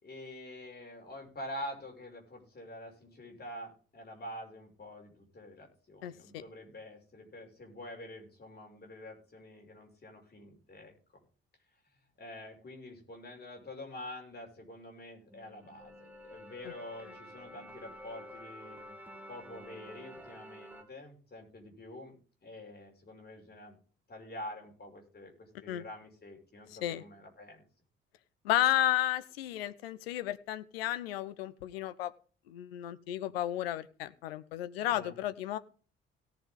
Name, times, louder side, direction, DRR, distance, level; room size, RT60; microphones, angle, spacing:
voice 1, 0.0-10.9 12.2-19.0 19.3-22.1 22.4-23.8 24.1-27.6 34.8-35.1, left 1 dB, 30° left, 1 dB, 5.6 m, -47 dB
voice 2, 6.0-6.4 16.6-16.7 25.7-25.8 26.8-27.0 28.4-32.1 32.5-35.6, left 13 dB, 75° left, 14 dB, 0.8 m, -33 dB
sound 1, 15.3-20.8, equal, 5° right, 3.1 m, -50 dB
18.0 x 7.1 x 3.7 m, 0.40 s
figure-of-eight pair, 45°, 31 cm